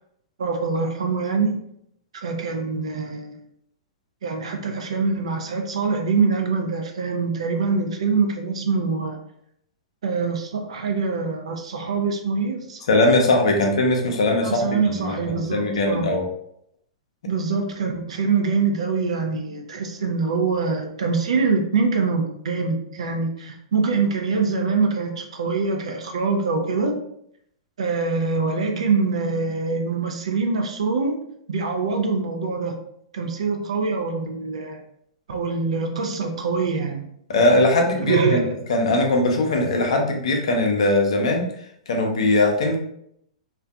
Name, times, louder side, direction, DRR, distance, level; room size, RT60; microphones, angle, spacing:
voice 1, 0.4-1.6 2.2-3.4 4.2-9.2 10.0-12.8 14.4-16.1 17.3-27.0 27.8-31.2 31.5-32.8 33.1-34.8 35.3-37.0 38.0-38.5, right 4 dB, 65° right, 3 dB, 0.4 m, -24 dB
voice 2, 12.9-16.2 37.3-41.5 41.9-42.8, left 2 dB, 60° left, 2 dB, 0.6 m, -20 dB
2.4 x 2.2 x 2.2 m, 0.72 s
figure-of-eight pair, 105°, 3 cm